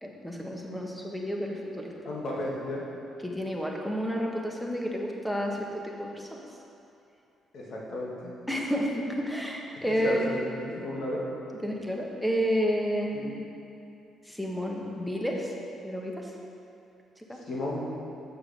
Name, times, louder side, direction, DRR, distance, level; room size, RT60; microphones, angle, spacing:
voice 1, 0.0-1.9 3.2-6.4 8.5-10.3 11.6-13.4 14.2-15.5 15.8-16.3 17.2-17.4, equal, 5° left, -1 dB, 1.4 m, -31 dB
voice 2, 2.1-2.8 7.5-8.3 9.9-11.3 13.1-13.3 17.5-17.9, left 1 dB, 60° left, -5 dB, 2.4 m, -33 dB
7.4 x 6.9 x 6.7 m, 2.6 s
cardioid pair, 90°, 0 cm